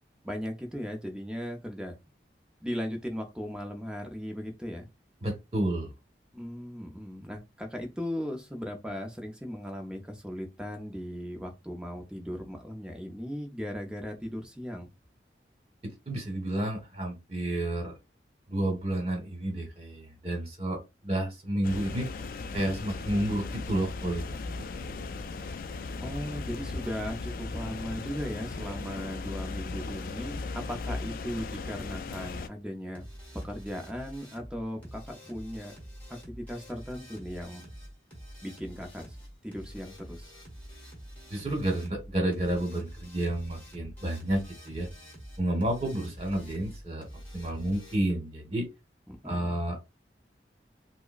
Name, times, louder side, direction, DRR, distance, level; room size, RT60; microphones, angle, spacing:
voice 1, 0.2-2.0 2.6-4.9 6.3-14.9 26.0-33.0 33.3-35.8 36.1-37.6 38.4-39.2 39.4-40.3 49.1-49.6, equal, 5° right, 0.6 m, -37 dB
voice 2, 5.2-5.9 15.8-17.9 18.5-22.1 22.5-25.0 41.3-44.9 45.4-47.0 47.3-48.6 49.2-49.8, right 1 dB, 35° right, 1.3 m, -31 dB
sound 1, 21.6-32.5, left 3 dB, 50° left, 0.3 m, -37 dB
sound 2, 32.9-48.0, equal, 10° left, 1.5 m, -47 dB
4.7 x 2.0 x 2.4 m
head